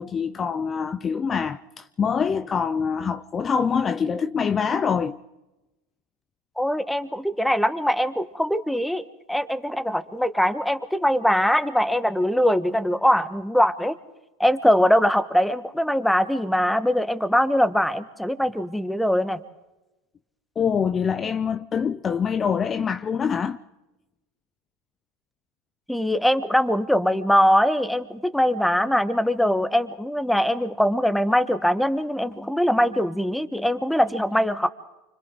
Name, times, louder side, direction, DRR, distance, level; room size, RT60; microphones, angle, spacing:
voice 1, 0.0-5.2 20.6-23.6, left 6 dB, 30° left, 0.7 m, -25 dB
voice 2, 6.6-9.0 9.3-14.0 14.4-19.4 25.9-34.7, equal, 5° left, 1.4 m, -22 dB
29.5 x 25.5 x 3.9 m
hypercardioid pair, 95°, 0 cm